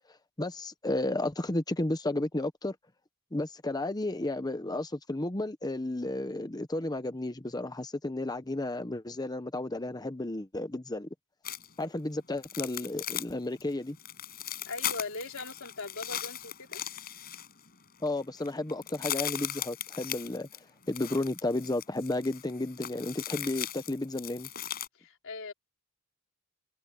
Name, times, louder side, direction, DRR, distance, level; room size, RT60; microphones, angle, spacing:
voice 1, 0.1-2.8 3.3-11.1 11.8-14.0 18.0-20.5 20.9-24.5, left 2 dB, 20° left, 0.9 m, -33 dB
sound 1, 11.4-11.8 12.4-13.3 13.6-13.7 14.0-17.7 18.1-18.2 18.4-24.9, left 10 dB, 45° left, 6.9 m, -38 dB
voice 2, 14.7-16.8 24.9-25.5, left 3 dB, 65° left, 4.0 m, -40 dB
head